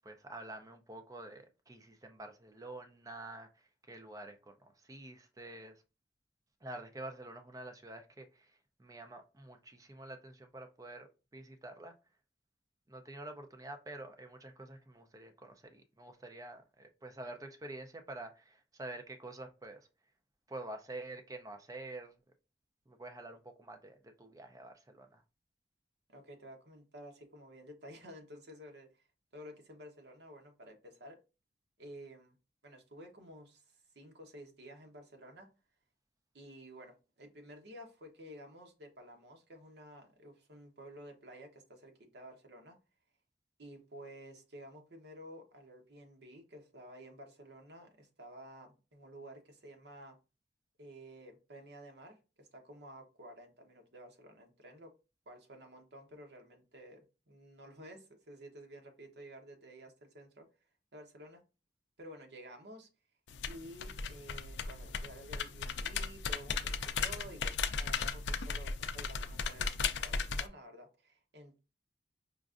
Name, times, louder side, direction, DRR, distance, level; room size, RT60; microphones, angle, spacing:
voice 1, 0.0-5.8 6.6-11.9 12.9-19.9 20.5-22.1 22.9-25.2, right 2 dB, 20° right, 0.4 m, -48 dB
voice 2, 26.1-29.0 29.3-31.2 31.8-32.4 32.6-35.5 36.3-42.8 43.6-50.2 50.8-54.9 55.3-60.5 60.9-61.4 62.0-62.9 63.5-71.6, equal, 70° right, 0.9 m, -52 dB
sound 1, 63.3-70.5, left 5 dB, 80° left, 0.4 m, -36 dB
5.0 x 2.4 x 2.4 m
head